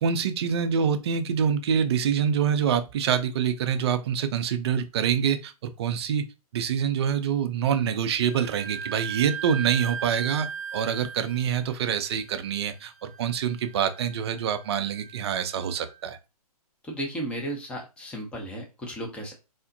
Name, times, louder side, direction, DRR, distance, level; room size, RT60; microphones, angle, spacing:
voice 1, 0.0-6.3 6.5-10.5 10.7-16.2, right 7 dB, 45° right, 8 dB, 0.4 m, -26 dB
Wind instrument woodwind instrument, 8.3-15.7, right 7 dB, 25° left, 1.5 m, -38 dB
voice 2, 16.8-19.3, right 1 dB, 5° left, 1 dB, 0.5 m, -34 dB
3.5 x 2.1 x 2.6 m, 0.28 s
figure-of-eight pair, 130°, 20 cm